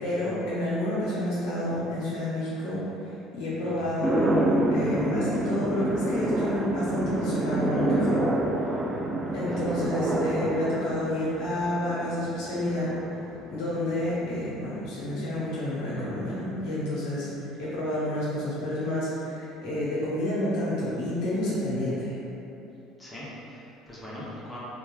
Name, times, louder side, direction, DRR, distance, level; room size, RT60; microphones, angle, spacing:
voice 1, 0.0-2.8 3.3-8.2 9.3-12.9 13.5-22.1, left 1 dB, 75° left, -9 dB, 0.8 m, -29 dB
sound 1, 4.0-14.4, right 1 dB, 25° right, 0.3 m, -28 dB
voice 2, 10.1-10.5 23.0-24.6, left 1 dB, 15° left, -8 dB, 0.8 m, -42 dB
2.9 x 2.3 x 2.4 m, 2.9 s
hypercardioid pair, 75°, 0 cm